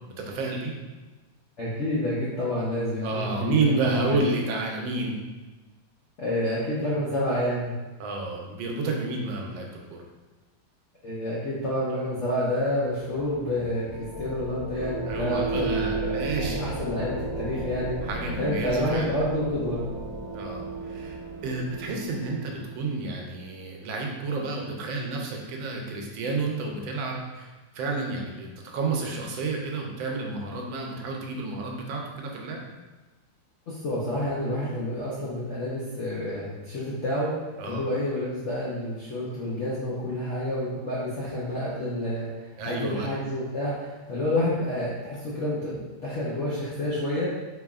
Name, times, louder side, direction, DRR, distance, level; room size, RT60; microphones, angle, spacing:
voice 1, 0.2-0.7 3.0-5.2 8.0-10.0 15.1-16.6 18.0-19.2 20.3-21.2 21.4-32.6 37.6-37.8 42.6-43.1, right 3 dB, 80° right, 1 dB, 1.4 m, -30 dB
voice 2, 1.6-4.3 6.2-7.7 11.0-16.3 16.6-17.9 18.4-19.8 33.7-37.3 37.7-47.3, left 1 dB, 70° left, -7 dB, 0.7 m, -29 dB
sound 1, 12.3-22.9, right 2 dB, 40° left, 1.5 m, -34 dB
4.0 x 3.3 x 2.3 m, 1.2 s
omnidirectional pair, 2.1 m